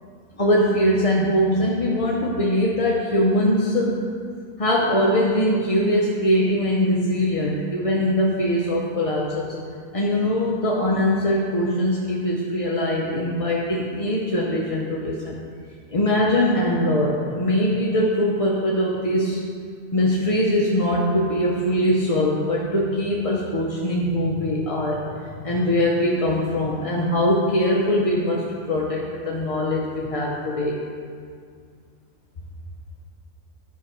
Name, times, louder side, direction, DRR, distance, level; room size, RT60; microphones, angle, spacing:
voice 1, 0.4-4.0 4.6-9.5 9.9-15.4 15.9-19.4 19.9-25.0 25.4-30.8, left 1 dB, 35° left, -4 dB, 0.6 m, -22 dB
9.4 x 5.9 x 4.4 m, 2.2 s
omnidirectional pair, 1.4 m